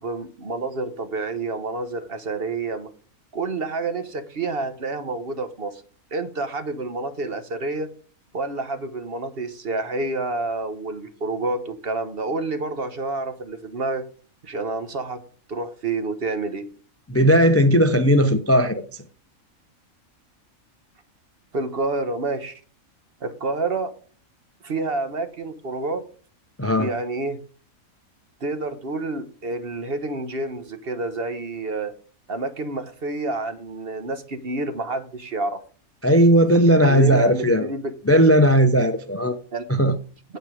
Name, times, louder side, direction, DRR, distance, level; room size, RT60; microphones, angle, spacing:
voice 1, 0.0-2.9 3.3-5.8 6.1-7.9 8.3-14.0 14.4-15.2 15.5-16.6 21.5-22.5 23.2-23.9 24.6-26.0 26.8-27.4 28.4-31.9 32.3-35.6 36.8-37.9 39.5-39.6, right 3 dB, 45° right, 1.2 m, -28 dB
voice 2, 17.1-19.0 26.6-26.9 36.0-37.7 38.1-39.4 39.7-40.0, equal, 15° left, 0.5 m, -17 dB
9.2 x 8.4 x 5.0 m
omnidirectional pair, 1.5 m